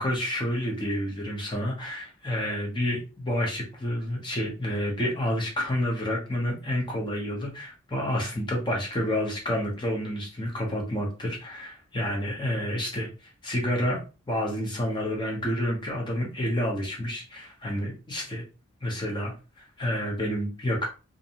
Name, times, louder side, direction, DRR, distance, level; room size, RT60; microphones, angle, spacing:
voice 1, 0.0-13.1 13.4-14.0 14.3-18.4 18.8-20.9, equal, 20° left, 0 dB, 0.7 m, -29 dB
2.6 x 2.2 x 2.8 m, 0.32 s
head